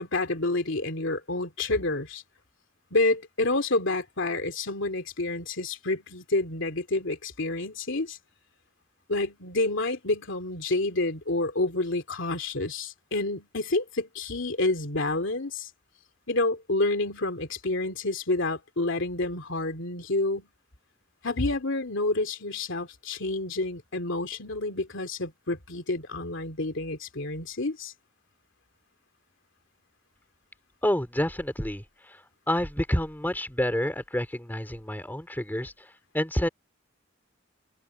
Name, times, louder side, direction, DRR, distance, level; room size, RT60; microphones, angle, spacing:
voice 1, 0.0-2.2 2.9-8.2 9.1-15.7 16.3-20.5 21.2-27.9, left 2 dB, 70° left, 2.9 m, -29 dB
voice 2, 30.8-32.2 32.5-35.9 36.1-36.5, left 1 dB, 10° left, 3.3 m, -28 dB
open air
head